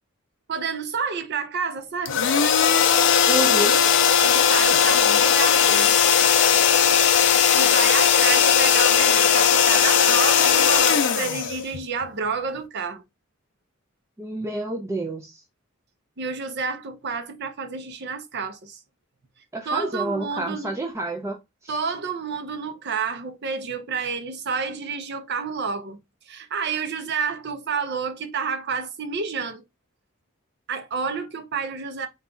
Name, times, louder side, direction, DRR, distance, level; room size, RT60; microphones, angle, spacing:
voice 1, 0.5-2.3 4.2-6.0 7.5-13.0 16.2-18.8 19.7-20.7 21.7-26.0 26.3-29.6 30.7-32.1, right 5 dB, 55° right, 0.6 m, -29 dB
sound 1, 2.1-12.0, left 8 dB, 60° left, 0.5 m, -18 dB
voice 2, 3.3-3.8 14.2-15.4 19.5-21.8, right 1 dB, 15° right, 0.4 m, -29 dB
4.0 x 2.3 x 3.8 m
head